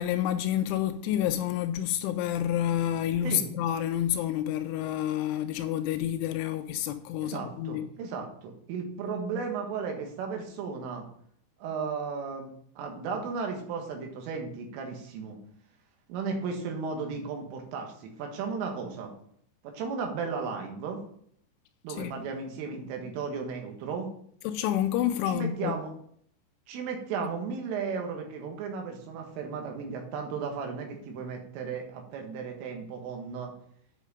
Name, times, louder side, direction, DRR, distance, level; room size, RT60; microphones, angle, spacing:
voice 1, 0.0-7.8 22.0-22.3 24.4-25.8, left 11 dB, 85° left, 2.9 m, -29 dB
voice 2, 7.2-11.1 11.6-15.4 16.1-19.1 19.6-21.0 21.8-24.1 25.3-25.9 26.7-33.5, right 5 dB, 80° right, 4.1 m, -35 dB
9.2 x 5.6 x 5.0 m
omnidirectional pair, 5.7 m